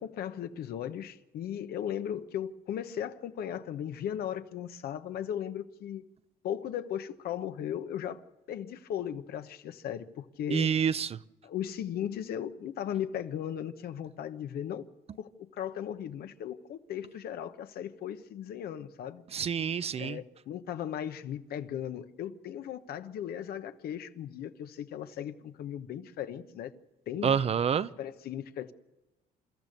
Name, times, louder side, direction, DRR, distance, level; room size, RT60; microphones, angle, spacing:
voice 1, 0.0-6.0 6.4-10.7 11.4-14.9 15.2-19.2 20.0-26.7 27.1-27.4 27.8-28.7, left 10 dB, 65° left, 1.2 m, -37 dB
voice 2, 10.5-11.2 19.3-20.2 27.2-27.9, right 7 dB, 35° right, 0.6 m, -28 dB
29.0 x 13.5 x 6.7 m
cardioid pair, 110°, 17 cm